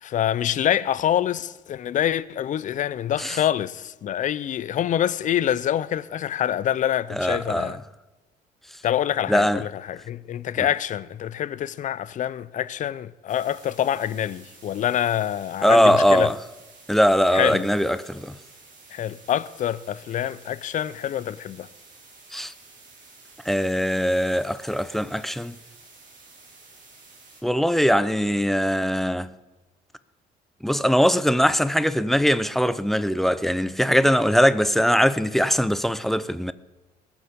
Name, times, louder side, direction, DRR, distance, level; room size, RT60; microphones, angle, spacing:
voice 1, 0.0-7.8 8.8-16.3 17.3-17.7 18.9-21.7, left 10 dB, 50° left, 0.6 m, -26 dB
voice 2, 7.1-7.7 9.3-9.6 15.6-16.4 16.9-18.3 22.3-22.5 23.5-25.5 27.4-29.3 30.6-36.5, equal, ahead, 0.5 m, -21 dB
sound 1, 13.3-27.4, right 3 dB, 50° right, 3.9 m, -51 dB
20.5 x 7.2 x 5.3 m
cardioid pair, 110°, 17 cm